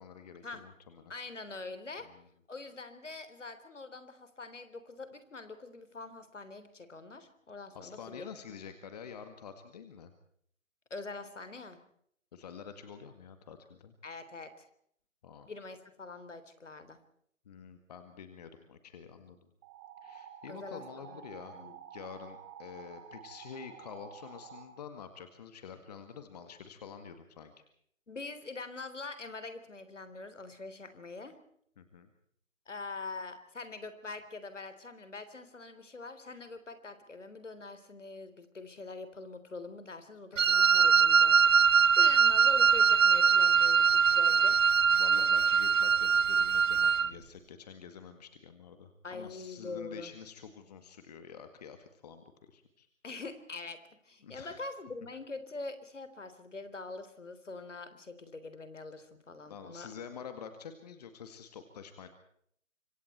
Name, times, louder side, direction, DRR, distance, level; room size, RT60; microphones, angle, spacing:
voice 1, 0.0-1.1 2.0-2.3 7.7-10.1 12.3-13.9 15.2-15.5 17.5-19.5 20.0-21.6 21.9-27.5 31.8-32.1 40.3-40.4 44.9-52.9 54.2-54.6 59.5-62.1, left 7 dB, 30° left, 8 dB, 2.0 m, -48 dB
voice 2, 1.1-2.1 2.5-8.2 10.9-11.8 14.0-14.7 15.5-17.0 20.5-21.2 21.5-21.7 28.1-31.4 32.7-44.6 49.0-50.1 53.0-59.9, left 3 dB, 65° left, 11 dB, 3.7 m, -44 dB
sound 1, 19.6-24.6, right 8 dB, 15° right, 1.7 m, -50 dB
Wind instrument woodwind instrument, 40.4-47.1, right 6 dB, 75° right, 0.8 m, -23 dB
26.0 x 25.0 x 4.4 m, 0.64 s
figure-of-eight pair, 145°, 39 cm